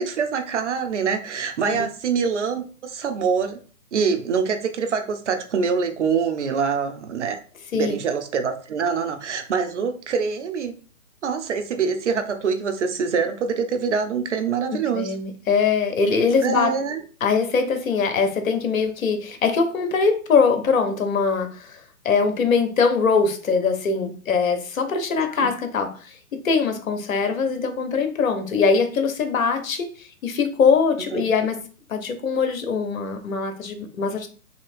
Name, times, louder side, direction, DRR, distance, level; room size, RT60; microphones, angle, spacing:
voice 1, 0.0-3.6 3.9-7.4 7.7-10.8 11.2-15.1 16.4-17.0 25.4-25.5 31.1-31.3, right 6 dB, 50° right, 7 dB, 0.5 m, -25 dB
voice 2, 14.9-16.7 17.2-21.8 22.0-31.6 31.9-34.3, left 5 dB, 60° left, 7 dB, 0.7 m, -22 dB
3.2 x 2.7 x 2.5 m, 0.40 s
figure-of-eight pair, 130°, 45 cm